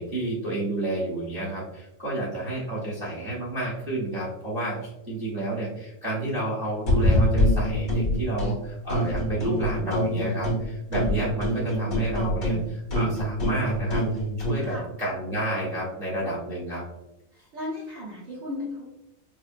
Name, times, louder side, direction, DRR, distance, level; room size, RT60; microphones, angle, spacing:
voice 1, 0.0-14.0 14.5-16.8, right 1 dB, 20° right, -7 dB, 0.8 m, -30 dB
sound 1, 6.9-8.5 8.9-10.7 10.9-14.6, equal, 80° left, 1.7 m, -25 dB
voice 2, 14.5-14.9 17.5-18.9, left 2 dB, 55° right, -6 dB, 1.3 m, -35 dB
5.3 x 2.0 x 2.5 m, 0.91 s
omnidirectional pair, 1.5 m